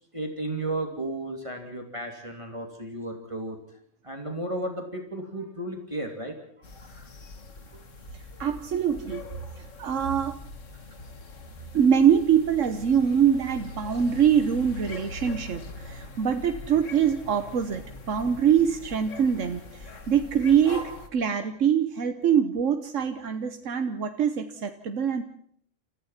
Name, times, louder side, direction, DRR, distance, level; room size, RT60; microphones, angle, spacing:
voice 1, 0.1-3.6 4.0-6.4 6.7-7.1, right 1 dB, 25° right, 2 dB, 3.0 m, -34 dB
sound 1, 6.6-21.1, left 3 dB, 90° left, 2.2 m, -42 dB
voice 2, 8.4-9.2 9.6-10.4 11.7-25.2, right 8 dB, 85° right, 7 dB, 1.4 m, -24 dB
30.0 x 15.0 x 5.8 m, 0.67 s
omnidirectional pair, 1.3 m